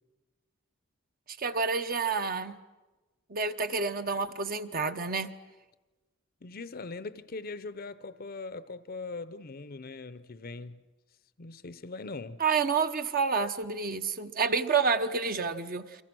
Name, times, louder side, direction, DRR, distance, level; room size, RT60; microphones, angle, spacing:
voice 1, 1.3-2.6 3.3-5.3 12.4-16.0, right 5 dB, 45° right, 1.0 m, -29 dB
voice 2, 6.4-10.8 11.4-12.4, left 3 dB, 45° left, 0.7 m, -41 dB
30.0 x 23.5 x 6.2 m
head